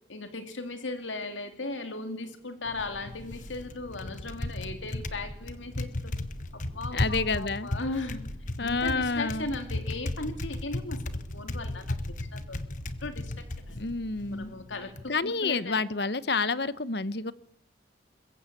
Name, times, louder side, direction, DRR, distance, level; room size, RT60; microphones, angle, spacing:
voice 1, 0.1-6.1 6.5-8.2 8.6-11.0 11.3-12.6 13.0-13.3 13.7-13.8 14.3-14.9 15.2-15.8, left 2 dB, 90° left, 2.6 m, -37 dB
sound 1, 2.6-14.4, equal, 85° right, 5.8 m, -50 dB
Typing, 2.7-15.1, left 1 dB, 40° left, 1.3 m, -36 dB
voice 2, 6.9-7.7 8.6-9.5 13.7-14.5 15.1-17.3, left 4 dB, 60° left, 1.0 m, -29 dB
22.0 x 21.5 x 8.5 m
head